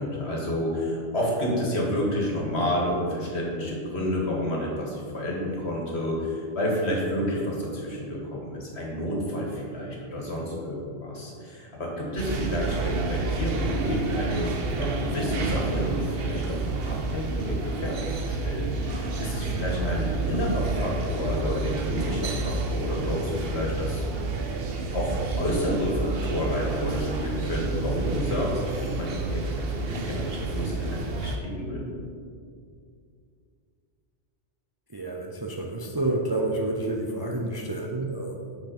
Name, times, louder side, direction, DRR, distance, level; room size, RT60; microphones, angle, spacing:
voice 1, 0.0-24.0 24.9-31.9, equal, 60° left, -3 dB, 1.9 m, -30 dB
sound 1, 12.2-31.4, right 3 dB, 55° right, 0.9 m, -30 dB
voice 2, 34.9-38.6, right 2 dB, 30° right, -1 dB, 0.4 m, -29 dB
7.9 x 5.7 x 4.4 m, 2.3 s
omnidirectional pair, 1.3 m